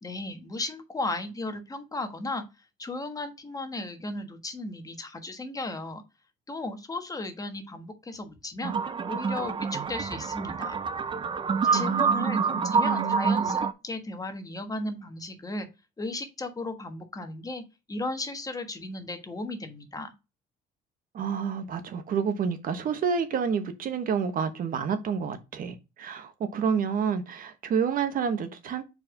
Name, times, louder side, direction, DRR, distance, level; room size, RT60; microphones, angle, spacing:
voice 1, 0.0-2.4 2.8-6.0 6.5-10.7 11.7-15.7 16.0-20.1, left 2 dB, 20° left, 1.3 m, -35 dB
sound 1, 8.6-13.7, right 5 dB, 30° right, 0.6 m, -27 dB
voice 2, 11.7-12.4 12.8-13.6 21.1-28.8, right 6 dB, 55° right, 1.1 m, -29 dB
4.7 x 4.4 x 5.0 m
cardioid pair, 110°, 17 cm